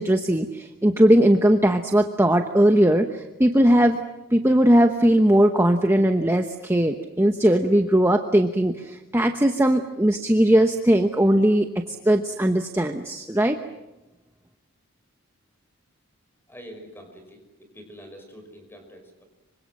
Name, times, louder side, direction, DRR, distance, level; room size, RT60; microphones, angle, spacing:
voice 1, 0.0-4.0 4.3-11.7 12.0-13.6, right 1 dB, 10° right, 5 dB, 1.0 m, -19 dB
voice 2, 16.5-19.2, equal, 10° left, 5 dB, 5.6 m, -45 dB
26.5 x 25.0 x 7.7 m, 0.97 s
head